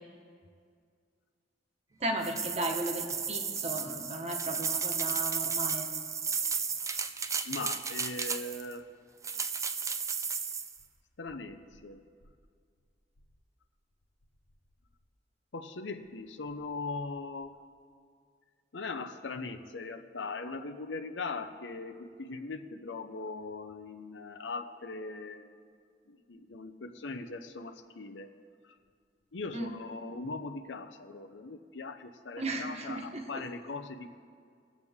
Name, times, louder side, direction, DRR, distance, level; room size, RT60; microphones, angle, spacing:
voice 1, 2.0-5.9 29.5-29.7 32.4-33.4, right 2 dB, 35° right, 3 dB, 1.2 m, -35 dB
sound 1, 2.2-8.7 9.2-10.8, right 6 dB, 15° right, 0.4 m, -33 dB
voice 2, 7.4-8.9 11.2-12.0 15.5-17.5 18.7-25.5 26.3-28.3 29.3-34.1, left 3 dB, 90° left, 8 dB, 0.8 m, -40 dB
22.0 x 8.2 x 3.6 m, 2.2 s
head